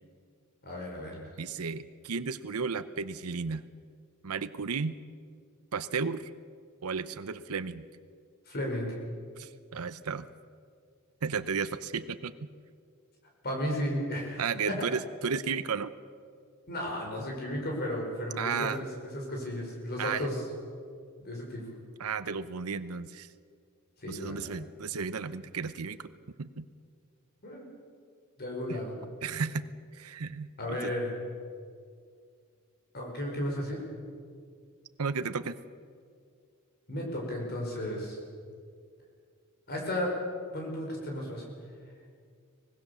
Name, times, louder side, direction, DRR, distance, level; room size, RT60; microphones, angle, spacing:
voice 1, 0.6-1.2 8.5-8.9 13.4-14.4 16.7-18.9 19.1-20.4 21.2-21.6 24.0-24.5 27.4-27.7 28.4-28.9 30.6-31.1 32.9-33.8 36.9-38.2 39.7-40.1 40.5-41.4, left 1 dB, 50° left, -1 dB, 5.0 m, -34 dB
voice 2, 1.4-3.6 4.2-5.0 5.7-6.3 6.8-7.9 9.4-10.2 11.2-12.3 14.4-15.9 18.4-18.8 20.0-20.3 22.0-23.3 24.1-26.0 26.4-26.7 28.7-28.8 29.2-29.7 29.9-30.9 35.0-35.6, right 5 dB, 85° right, 13 dB, 0.8 m, -33 dB
24.5 x 19.5 x 7.0 m, 2.2 s
head